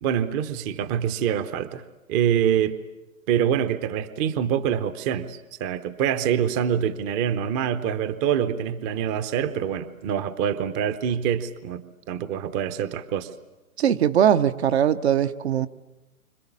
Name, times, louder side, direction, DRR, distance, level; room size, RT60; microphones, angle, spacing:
voice 1, 0.0-1.8 2.1-2.7 3.3-13.3, right 9 dB, 20° right, 12 dB, 0.8 m, -25 dB
voice 2, 13.8-15.7, right 9 dB, 50° right, 10 dB, 1.0 m, -20 dB
29.5 x 26.0 x 7.3 m, 1.1 s
figure-of-eight pair, 125°, 43 cm